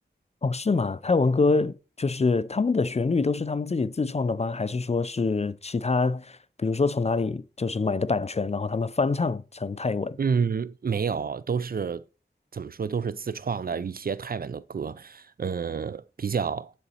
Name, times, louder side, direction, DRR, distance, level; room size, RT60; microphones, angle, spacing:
voice 1, 0.4-10.2, left 4 dB, 35° left, 0.4 m, -25 dB
voice 2, 10.2-12.1 12.5-16.7, right 6 dB, 50° right, 0.4 m, -29 dB
9.8 x 4.0 x 4.2 m
wide cardioid pair, 50°, 19 cm